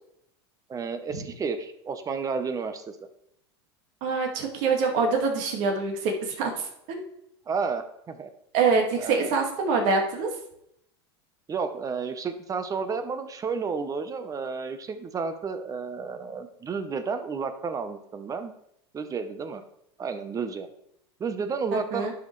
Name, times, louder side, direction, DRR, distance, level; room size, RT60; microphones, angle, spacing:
voice 1, 0.7-3.0 7.5-8.3 9.0-9.3 11.5-18.5 18.9-19.6 20.0-20.7 21.2-22.1, right 5 dB, 25° right, 10 dB, 0.9 m, -31 dB
voice 2, 4.0-7.0 8.5-10.3 21.7-22.1, right 4 dB, 55° right, 2 dB, 2.1 m, -25 dB
11.0 x 5.5 x 3.3 m, 0.77 s
supercardioid pair, 115°, 14 cm